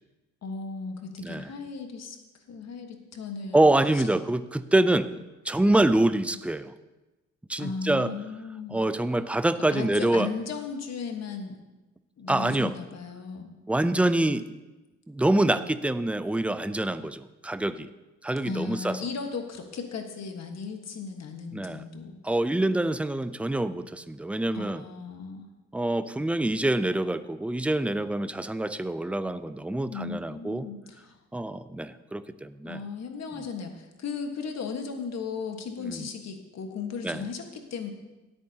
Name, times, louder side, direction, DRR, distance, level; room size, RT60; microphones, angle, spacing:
voice 1, 0.4-2.2 2.5-3.7 3.9-4.0 7.6-8.8 9.7-11.6 12.2-13.5 18.4-22.2 24.5-25.5 29.9-31.2 32.6-37.9, left 5 dB, 60° left, 4 dB, 1.5 m, -36 dB
voice 2, 1.2-1.5 3.5-5.1 5.4-6.7 7.5-8.1 8.7-10.3 12.3-12.7 13.7-14.4 15.1-17.9 18.2-19.0 21.5-21.8 22.2-24.8 25.7-30.6 31.3-32.8 35.8-36.1 37.0-37.2, right 1 dB, 5° right, 12 dB, 0.5 m, -25 dB
17.0 x 8.6 x 2.9 m, 1.1 s
cardioid pair, 90°, 30 cm